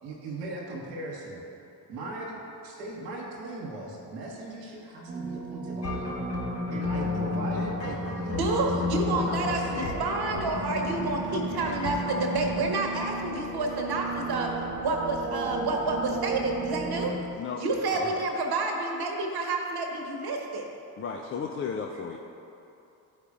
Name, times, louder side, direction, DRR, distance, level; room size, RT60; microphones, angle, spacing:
voice 1, 0.0-1.4 1.9-6.1 6.7-8.7 9.1-9.9 17.1-17.2 17.7-18.1, right 2 dB, 80° right, -4 dB, 1.1 m, -38 dB
sound 1, 5.1-17.1, right 3 dB, 20° right, 0.9 m, -35 dB
sound 2, 5.8-12.8, left 4 dB, 90° left, 1.0 m, -33 dB
voice 2, 8.3-14.5 14.8-17.1 17.6-20.7, right 2 dB, 50° right, 2 dB, 1.3 m, -29 dB
voice 3, 21.0-22.2, left 6 dB, 25° left, 0 dB, 0.5 m, -34 dB
12.5 x 4.8 x 2.4 m, 2.9 s
figure-of-eight pair, 40°, 48 cm